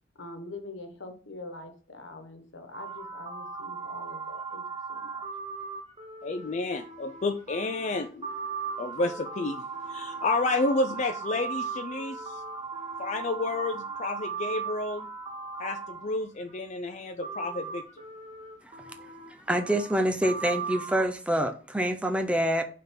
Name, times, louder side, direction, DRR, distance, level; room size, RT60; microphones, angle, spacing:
voice 1, 0.2-5.2, left 2 dB, 85° left, 1.2 m, -44 dB
sound 1, 2.7-16.5 17.2-21.0, right 5 dB, 30° right, 1.0 m, -38 dB
voice 2, 6.2-8.3 8.8-12.4 13.0-15.1 15.6-17.8, left 2 dB, 40° left, 0.4 m, -30 dB
voice 3, 19.3-22.6, right 1 dB, 5° right, 0.6 m, -27 dB
5.7 x 3.7 x 5.6 m
head